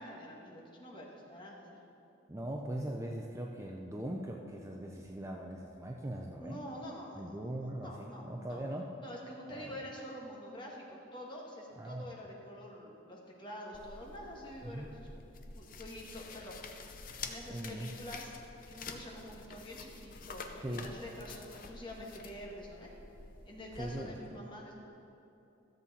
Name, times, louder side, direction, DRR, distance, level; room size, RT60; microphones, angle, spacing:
voice 1, 0.0-1.8 6.4-7.2 7.8-8.7 9.0-15.1 15.5-16.9 17.2-18.4 18.6-22.9 23.5-24.7, equal, 25° left, -2 dB, 1.4 m, -47 dB
voice 2, 2.3-6.6 7.1-8.9 9.5-9.7 11.8-12.1 14.6-14.9 17.5-17.9 20.6-20.9 23.8-24.2, right 1 dB, 15° right, 0 dB, 0.5 m, -40 dB
sound 1, 13.7-23.9, left 4 dB, 45° left, 0.6 m, -48 dB
13.5 x 7.4 x 4.2 m, 2.9 s
head